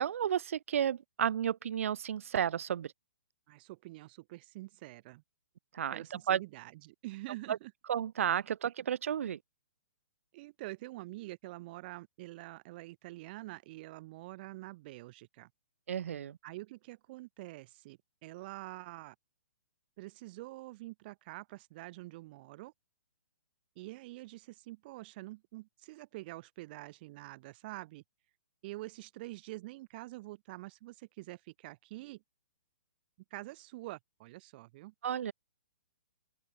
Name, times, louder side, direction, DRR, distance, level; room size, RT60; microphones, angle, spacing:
voice 1, 0.0-2.9 5.7-6.4 7.5-7.6 7.9-9.4 15.9-16.4 35.0-35.3, right 9 dB, 60° right, 3.0 m, -32 dB
voice 2, 3.5-5.2 5.9-7.7 10.3-15.5 16.4-19.1 20.0-22.7 23.8-28.0 28.6-32.2 33.3-34.9, right 19 dB, 40° right, 3.0 m, -46 dB
open air
hypercardioid pair, 140°, 8 cm